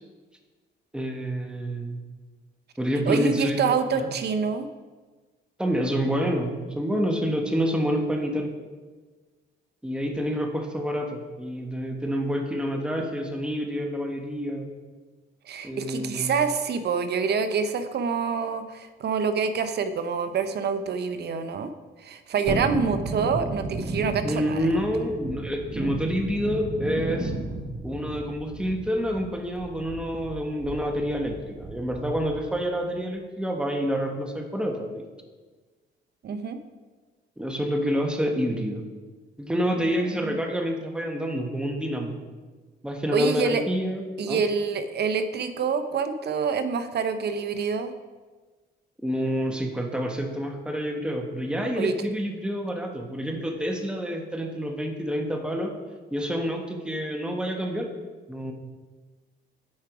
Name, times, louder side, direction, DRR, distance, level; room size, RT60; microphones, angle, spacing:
voice 1, 0.9-2.0 2.8-3.6 4.0-4.1 5.6-8.5 9.8-14.7 15.6-16.3 24.2-27.3 27.8-35.0 37.4-38.8 39.4-42.2 42.8-44.4 49.0-55.7 56.1-57.9 58.3-58.5, equal, 5° right, 2 dB, 1.2 m, -28 dB
voice 2, 3.1-4.7 15.5-21.7 22.0-24.7 36.2-36.6 39.8-40.4 43.1-43.6 44.2-47.9 51.8-51.9, right 5 dB, 55° right, 10 dB, 0.7 m, -27 dB
Thunderstorm, 22.5-32.7 33.0-33.1, right 2 dB, 30° right, 1.0 m, -34 dB
8.7 x 4.7 x 4.8 m, 1.3 s
cardioid pair, 90°, 20 cm